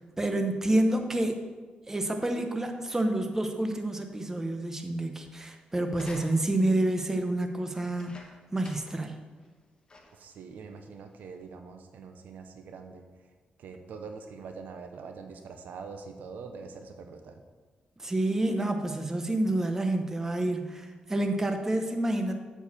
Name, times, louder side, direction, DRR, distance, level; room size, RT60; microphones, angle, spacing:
voice 1, 0.2-1.4 1.9-8.2 8.5-9.1 18.0-22.3, right 1 dB, 15° right, 5 dB, 0.9 m, -28 dB
sound 1, 5.9-6.7 7.8-9.1 9.4-9.5 9.9-10.3 11.1-11.2, left 2 dB, 30° left, 1.3 m, -50 dB
voice 2, 10.1-13.3 13.6-17.4, right 5 dB, 80° right, 5 dB, 0.9 m, -44 dB
8.5 x 4.8 x 7.2 m, 1.4 s
cardioid pair, 110°, 3 cm